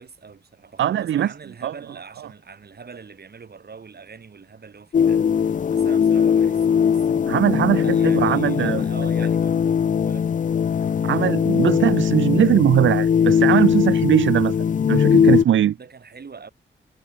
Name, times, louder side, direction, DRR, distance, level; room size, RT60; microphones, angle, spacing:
voice 1, 0.0-7.3 7.8-11.0 15.8-16.5, right 5 dB, 50° right, 3.5 m, -42 dB
voice 2, 0.8-1.3 1.6-1.7 7.3-8.8 11.0-14.5 14.9-15.8, right 11 dB, 70° right, 0.5 m, -20 dB
sound 1, 4.9-15.4, left 7 dB, 40° left, 0.4 m, -20 dB
cardioid pair, 60°, 21 cm